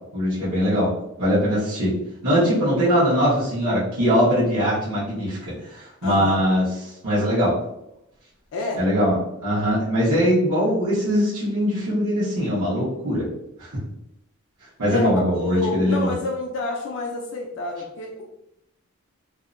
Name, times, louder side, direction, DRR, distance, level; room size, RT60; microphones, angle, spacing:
voice 1, 0.1-0.9 1.2-1.9 2.2-5.4 5.7-6.6 7.0-7.5 8.8-13.3 13.6-13.7 14.8-16.1, equal, 85° right, -11 dB, 1.0 m, -21 dB
voice 2, 6.0-6.4 8.5-8.8 14.9-18.2, left 3 dB, 55° left, 0 dB, 0.3 m, -29 dB
2.6 x 2.0 x 2.5 m, 0.83 s
head